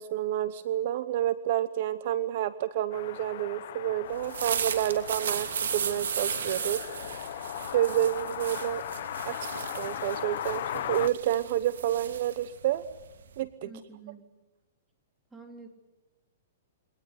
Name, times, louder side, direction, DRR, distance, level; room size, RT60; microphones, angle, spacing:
voice 1, 0.0-6.8 7.7-8.8 9.2-9.5 9.7-12.8 13.4-13.7, right 12 dB, 50° right, 15 dB, 0.9 m, -29 dB
sound 1, 2.9-11.1, left 12 dB, 55° left, 1.1 m, -38 dB
sound 2, 4.1-13.4, right 7 dB, 85° right, 2.7 m, -35 dB
voice 2, 13.6-14.3 15.3-15.7, right 4 dB, 5° right, 4 dB, 3.3 m, -48 dB
24.0 x 19.0 x 9.9 m, 1.1 s
hypercardioid pair, 160°, 0 cm